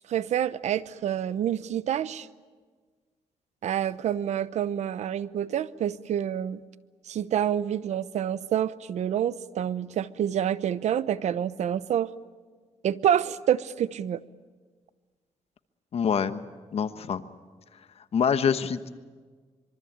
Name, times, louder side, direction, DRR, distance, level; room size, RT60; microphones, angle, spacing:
voice 1, 0.1-2.3 3.6-6.6 7.1-12.1 12.8-14.2, right 10 dB, 75° right, 16 dB, 0.9 m, -27 dB
voice 2, 15.9-16.4 16.7-17.2 18.1-18.9, left 7 dB, 60° left, 11 dB, 1.3 m, -25 dB
25.5 x 24.0 x 8.9 m, 1.5 s
cardioid pair, 105°, 12 cm